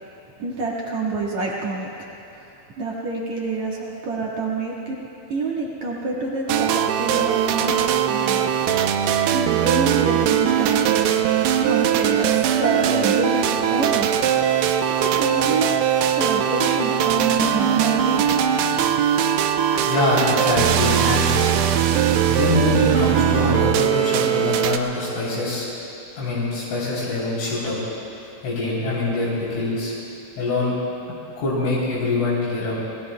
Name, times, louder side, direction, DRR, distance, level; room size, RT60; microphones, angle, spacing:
voice 1, 0.4-1.9 2.3-5.0 5.3-8.5 9.3-11.1 11.6-14.1 14.8-15.7 16.1-18.2 18.8-19.0, right 3 dB, 70° right, -4 dB, 1.7 m, -27 dB
sound 1, 6.5-24.8, right 9 dB, 85° right, 2.3 m, -20 dB
voice 2, 19.7-21.5 22.3-25.7 26.2-27.8 28.4-29.9 30.4-30.7 31.4-32.8, left 2 dB, 75° left, -9 dB, 5.9 m, -24 dB
28.5 x 20.5 x 2.2 m, 2.9 s
omnidirectional pair, 5.6 m